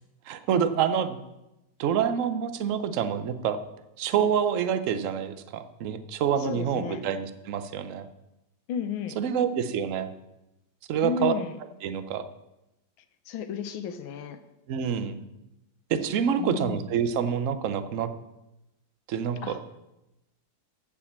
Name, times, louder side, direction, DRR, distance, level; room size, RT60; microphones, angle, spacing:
voice 1, 0.3-1.2 1.8-3.6 4.0-8.1 9.2-10.1 10.9-11.3 11.8-12.2 14.7-15.2 15.9-18.1 19.1-19.6, right 8 dB, 65° right, 10 dB, 0.8 m, -27 dB
voice 2, 6.4-7.0 8.7-9.2 11.0-11.5 13.3-14.4 16.4-16.9 19.4-19.6, left 8 dB, 85° left, 9 dB, 1.6 m, -33 dB
14.0 x 4.8 x 7.3 m, 0.94 s
omnidirectional pair, 2.1 m